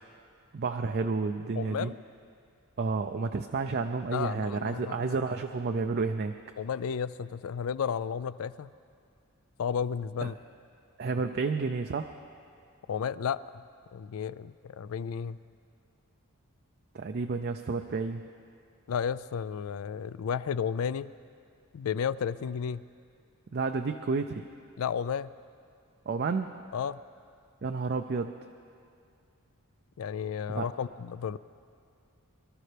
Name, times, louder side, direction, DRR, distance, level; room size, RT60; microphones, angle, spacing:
voice 1, 0.5-1.9 2.8-6.3 10.2-10.3 11.0-12.1 16.9-18.2 23.5-24.4 26.1-26.6 27.6-28.3 30.5-30.7, right 4 dB, 45° right, 6 dB, 0.4 m, -30 dB
voice 2, 1.6-2.0 4.1-5.3 6.6-8.7 9.6-10.3 12.9-13.6 13.9-15.4 18.9-21.1 21.7-22.8 24.8-25.3 26.7-27.0 30.0-31.4, left 7 dB, 70° left, 17 dB, 0.4 m, -33 dB
24.0 x 12.5 x 3.4 m, 2.3 s
head